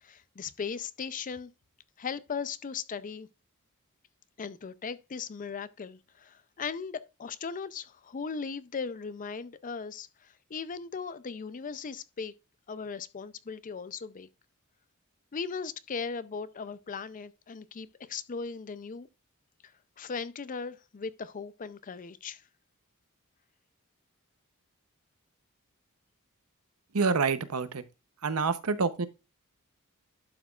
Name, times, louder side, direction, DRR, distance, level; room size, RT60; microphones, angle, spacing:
voice 1, 0.0-1.5 2.0-3.3 4.4-12.3 12.7-14.3 15.3-19.1 20.0-22.4, left 5 dB, 35° left, 0.5 m, -38 dB
voice 2, 26.9-27.8 28.2-29.1, right 4 dB, 80° right, 0.8 m, -27 dB
11.5 x 5.9 x 2.4 m
head